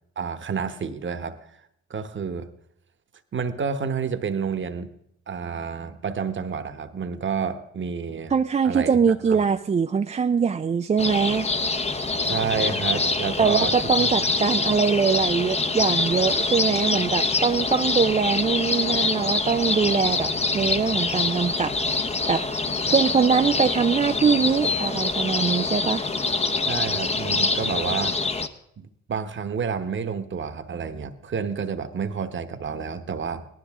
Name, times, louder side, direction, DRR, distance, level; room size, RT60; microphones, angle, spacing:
voice 1, 0.2-1.4 1.9-2.5 3.3-4.9 5.3-8.3 8.6-9.5 12.2-14.1 26.7-28.2 28.8-33.5, right 6 dB, 40° right, 9 dB, 1.1 m, -29 dB
voice 2, 8.3-11.5 13.4-21.8 22.3-22.5 22.9-26.1, right 6 dB, 25° right, 7 dB, 0.4 m, -22 dB
sound 1, 11.0-28.5, left 3 dB, 20° left, 0.8 m, -25 dB
18.0 x 12.0 x 3.6 m, 0.74 s
cardioid pair, 90°, 30 cm